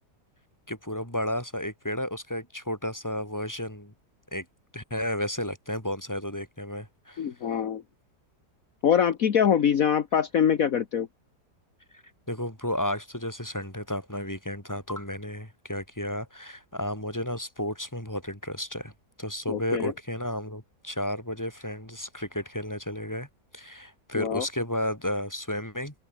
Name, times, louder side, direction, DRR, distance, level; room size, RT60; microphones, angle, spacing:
voice 1, 0.7-3.9 4.3-4.5 4.7-7.3 12.3-18.9 19.2-23.3 23.5-25.9, left 1 dB, 10° left, 6.0 m, -32 dB
voice 2, 7.2-7.8 8.8-11.1 19.5-19.9 24.1-24.4, left 8 dB, 60° left, 1.6 m, -24 dB
omnidirectional pair, 1.7 m